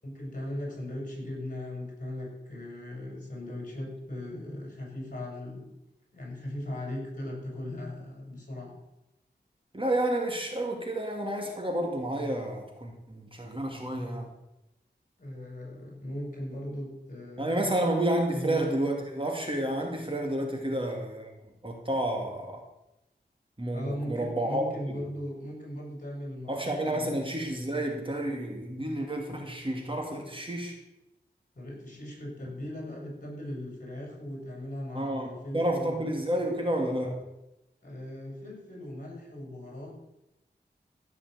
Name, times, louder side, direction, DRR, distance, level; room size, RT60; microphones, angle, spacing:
voice 1, 0.0-5.7 6.1-8.7 15.2-17.9 18.3-18.6 23.7-27.2 31.5-36.1 37.8-40.0, left 1 dB, 45° left, -1 dB, 6.3 m, -38 dB
voice 2, 9.7-14.3 17.4-21.3 21.6-22.6 23.6-24.6 26.5-30.8 34.9-37.2, right 1 dB, 30° right, 1 dB, 2.4 m, -30 dB
15.0 x 6.3 x 8.2 m, 0.92 s
wide cardioid pair, 70°, 18 cm